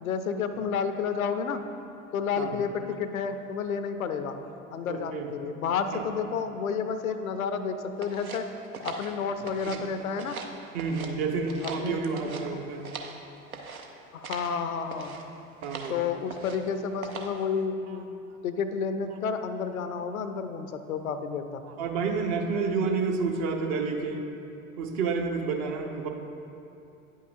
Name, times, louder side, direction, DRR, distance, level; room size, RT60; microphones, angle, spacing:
voice 1, 0.0-1.6 2.1-4.4 4.7-8.5 8.8-10.4 11.6-12.6 14.1-15.1 15.9-18.1 18.4-21.6, left 6 dB, 85° left, 9 dB, 0.5 m, -31 dB
voice 2, 4.9-5.3 5.9-6.1 9.6-9.7 10.7-12.9 15.6-16.0 17.9-18.0 21.8-24.3 24.8-26.1, right 4 dB, 55° right, 3 dB, 0.8 m, -29 dB
sound 1, 8.0-9.9 10.1-11.1 11.4-13.2 13.5-13.9 14.2-14.5 14.9-15.2 15.6-15.9 16.3-16.7 17.0-17.4, right 4 dB, 90° right, 0.6 m, -40 dB
9.2 x 5.5 x 2.6 m, 2.7 s
figure-of-eight pair, 75°, 41 cm